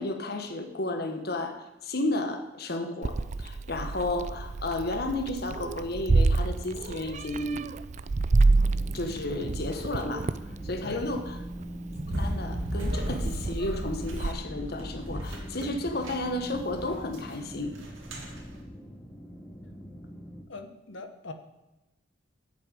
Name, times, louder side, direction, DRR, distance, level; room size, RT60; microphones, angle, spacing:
voice 1, 0.0-7.6 8.9-10.3 10.6-11.4 12.2-17.8, left 2 dB, 50° left, 6 dB, 1.2 m, -32 dB
Meow, 3.0-14.3, right 3 dB, 35° right, 0.4 m, -29 dB
sound 1, 8.5-20.4, equal, 10° left, 1.0 m, -43 dB
sound 2, 12.1-18.6, equal, 80° right, 2.3 m, -36 dB
voice 2, 20.5-21.3, left 3 dB, 70° left, 8 dB, 1.0 m, -41 dB
8.4 x 6.7 x 8.5 m, 0.99 s
head